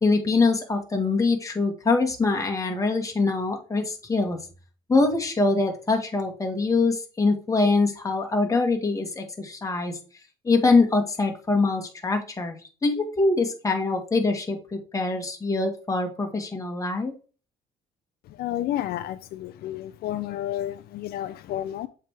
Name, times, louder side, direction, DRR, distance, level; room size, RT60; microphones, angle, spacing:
voice 1, 0.0-4.4 4.9-9.9 10.4-12.5 12.8-17.1, left 3 dB, 20° left, 1.6 m, -24 dB
voice 2, 18.4-21.9, left 12 dB, 70° left, 0.4 m, -31 dB
7.4 x 3.5 x 4.6 m
cardioid pair, 110°, 17 cm